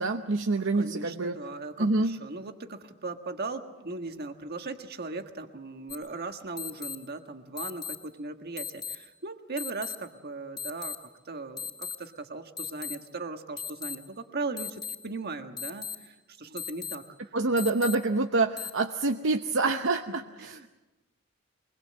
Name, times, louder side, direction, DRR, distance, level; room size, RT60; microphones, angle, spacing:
voice 1, 0.0-1.4 1.8-2.2 17.3-20.5, right 3 dB, 65° right, 5 dB, 0.8 m, -27 dB
voice 2, 0.6-11.0 11.2-17.0 17.5-17.7 20.4-20.7, right 3 dB, 50° right, 6 dB, 1.6 m, -38 dB
sound 1, 5.9-6.0 6.6-7.0 7.6-8.0 8.6-9.0 9.6-10.0 10.6-11.0 11.6-12.0 12.6-12.9 13.6-13.9 14.6-14.9 15.6-15.9 16.6-16.9 17.6-17.9 18.6-18.7, left 7 dB, 20° left, 3.7 m, -36 dB
23.5 x 20.5 x 7.6 m, 1.1 s
head